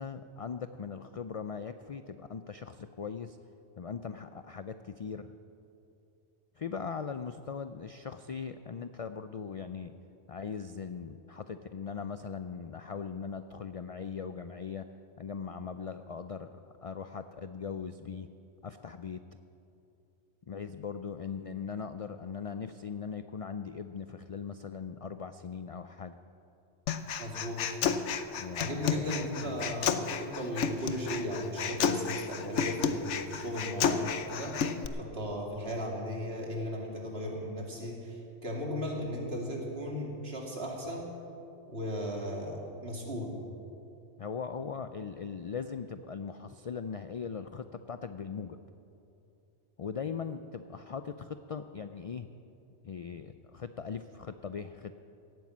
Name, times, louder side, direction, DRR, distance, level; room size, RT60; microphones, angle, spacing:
voice 1, 0.0-3.4 3.8-5.4 6.6-9.9 10.3-14.9 15.2-18.3 18.6-19.2 20.5-26.2 28.3-29.7 44.2-48.6 49.8-52.3 52.8-55.0, left 6 dB, 65° left, 10 dB, 0.3 m, -40 dB
Human voice, 26.9-34.9, left 7 dB, 85° left, 1.1 m, -32 dB
voice 2, 27.2-27.6 28.6-34.5 35.0-41.1 41.7-43.4, equal, 60° right, -1 dB, 2.8 m, -36 dB
17.5 x 9.3 x 7.3 m, 2.7 s
omnidirectional pair, 1.2 m